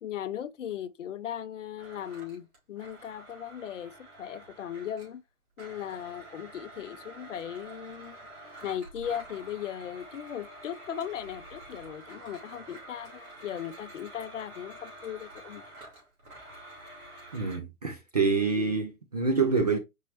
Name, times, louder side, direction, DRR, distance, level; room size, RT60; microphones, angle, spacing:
voice 1, 0.0-5.2 5.6-8.2 8.6-15.6 18.6-18.8, left 9 dB, 60° left, 0.5 m, -38 dB
Domestic sounds home sounds, 1.8-5.2 5.6-17.6, right 2 dB, 70° right, 2.4 m, -48 dB
voice 2, 17.3-19.8, right 4 dB, 30° right, 0.3 m, -26 dB
4.6 x 2.8 x 2.7 m
figure-of-eight pair, 120°, 44 cm